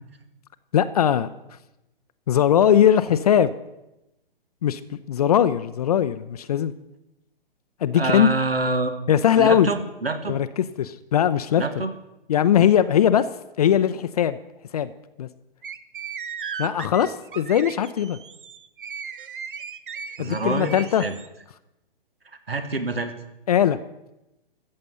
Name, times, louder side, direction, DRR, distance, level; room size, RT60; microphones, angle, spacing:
voice 1, 0.7-1.3 2.3-3.5 4.6-6.7 7.8-8.3 9.1-9.7 10.3-11.6 12.3-13.3 13.6-14.4 14.7-14.9 15.2-15.3 16.6-18.2 20.2-21.0 23.5-23.8, left 9 dB, 40° left, 12 dB, 0.5 m, -20 dB
voice 2, 7.9-8.9 9.4-10.3 11.6-11.9 12.6-12.7 20.2-21.1 22.5-23.1, right 3 dB, 80° right, 10 dB, 1.5 m, -26 dB
sound 1, 15.6-21.3, right 6 dB, 60° right, 0.9 m, -36 dB
14.0 x 7.7 x 6.8 m, 0.92 s
figure-of-eight pair, 125°, 29 cm